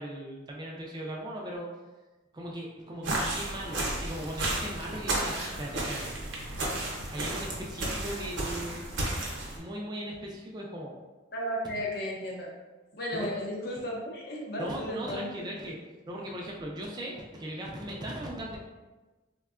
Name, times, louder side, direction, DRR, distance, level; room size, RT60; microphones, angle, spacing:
voice 1, 0.0-1.7 2.3-5.3 5.6-6.2 7.1-9.1 9.5-11.0 13.1-13.3 14.6-15.8 16.1-18.6, right 1 dB, 20° right, -2 dB, 0.3 m, -38 dB
sound 1, 3.0-9.6, right 1 dB, 70° right, 0.7 m, -33 dB
voice 2, 11.3-12.5 13.0-15.4, equal, 55° left, -3 dB, 0.6 m, -34 dB
3.5 x 2.1 x 2.3 m, 1.2 s
head